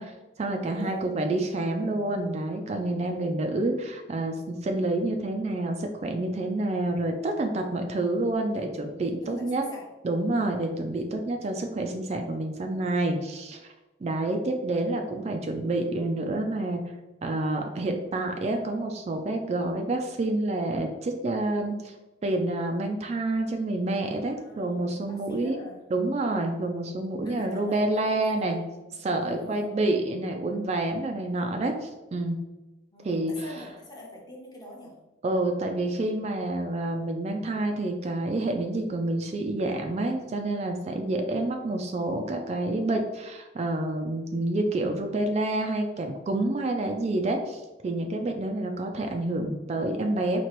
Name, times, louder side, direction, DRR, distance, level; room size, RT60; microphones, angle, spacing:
voice 1, 0.0-9.6 10.0-13.6 14.0-16.9 17.2-21.9 22.2-25.6 25.9-28.6 28.9-32.4 33.0-33.3 35.2-50.4, right 2 dB, 35° right, 4 dB, 0.3 m, -28 dB
voice 2, 9.2-9.8 24.4-25.8 27.2-28.9 29.2-29.9 32.9-35.0, left 2 dB, 20° left, -2 dB, 0.9 m, -45 dB
4.4 x 2.9 x 3.0 m, 1.1 s
head